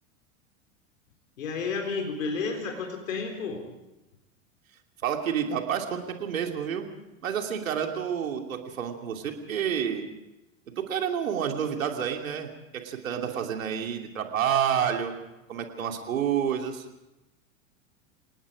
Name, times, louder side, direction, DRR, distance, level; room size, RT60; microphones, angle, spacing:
voice 1, 1.4-3.6, left 4 dB, 75° left, 4 dB, 4.0 m, -31 dB
voice 2, 5.0-6.8 7.2-10.1 10.8-15.1 15.5-16.8, right 8 dB, 80° right, 3 dB, 2.9 m, -29 dB
28.0 x 18.5 x 5.0 m, 0.95 s
hypercardioid pair, 95°, 40 cm